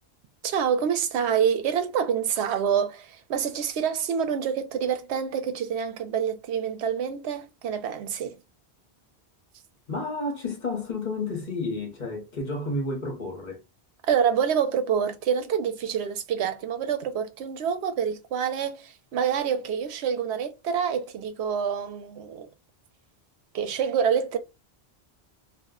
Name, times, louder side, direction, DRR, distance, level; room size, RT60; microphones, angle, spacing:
voice 1, 0.4-8.4 14.1-22.5 23.5-24.4, right 7 dB, 90° right, 0.9 m, -27 dB
voice 2, 9.9-13.6, left 2 dB, 45° left, 1.0 m, -31 dB
2.4 x 2.1 x 3.5 m
omnidirectional pair, 1.1 m